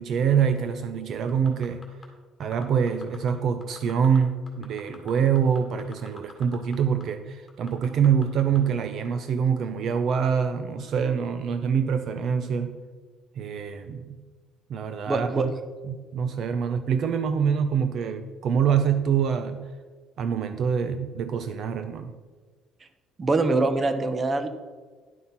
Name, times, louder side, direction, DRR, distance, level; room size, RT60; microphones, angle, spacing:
voice 1, 0.0-1.8 2.4-12.8 13.4-14.2 14.7-15.5 15.9-19.7 20.2-22.2, right 7 dB, 50° right, 10 dB, 0.5 m, -25 dB
sound 1, 1.3-2.1 2.4-3.3 3.6-4.2 4.5-6.8 7.0-7.1 7.5-8.6 9.0-9.1, left 4 dB, 15° left, 2.0 m, -46 dB
voice 2, 15.1-15.5 23.2-24.5, right 3 dB, 25° right, 10 dB, 0.8 m, -24 dB
11.0 x 5.6 x 5.7 m, 1.4 s
cardioid pair, 150°, 0 cm